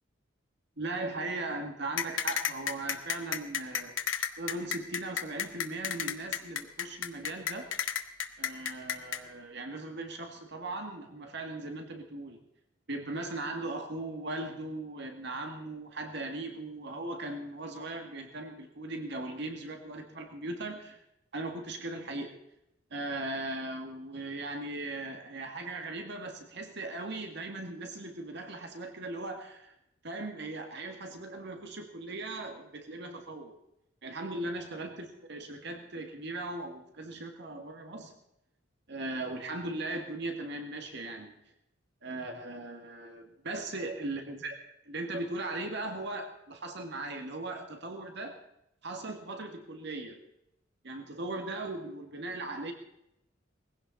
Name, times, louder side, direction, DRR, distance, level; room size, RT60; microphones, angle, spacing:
voice 1, 0.8-4.0 4.4-7.7 8.4-12.4 12.9-21.0 21.3-22.3 22.9-29.7 30.0-33.5 34.0-38.1 38.9-41.3 42.0-44.6 44.8-48.4 48.8-50.2 50.8-52.7, right 2 dB, 65° right, 4 dB, 2.0 m, -38 dB
sound 1, 2.0-9.2, left 8 dB, 90° left, 1.2 m, -31 dB
20.0 x 16.0 x 4.2 m, 0.80 s
head